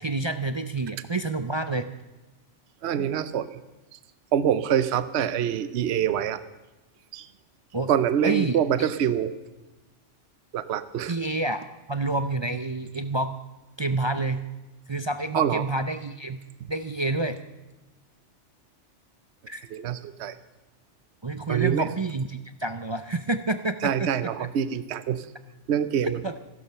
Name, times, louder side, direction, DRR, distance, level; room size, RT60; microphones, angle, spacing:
voice 1, 0.0-1.9 7.7-7.9 8.2-8.9 11.1-13.4 13.8-14.4 14.9-16.4 16.7-17.4 19.5-19.7 21.2-24.1 24.4-24.5 26.0-26.4, right 2 dB, 35° right, 9 dB, 0.5 m, -28 dB
voice 2, 2.8-3.6 4.3-6.4 7.1-7.3 7.9-9.3 10.5-11.1 15.3-15.7 19.7-20.4 21.5-21.9 23.8-25.2 25.7-26.2, right 9 dB, 65° right, 14 dB, 1.0 m, -25 dB
15.5 x 12.0 x 6.8 m, 1.1 s
omnidirectional pair, 1.3 m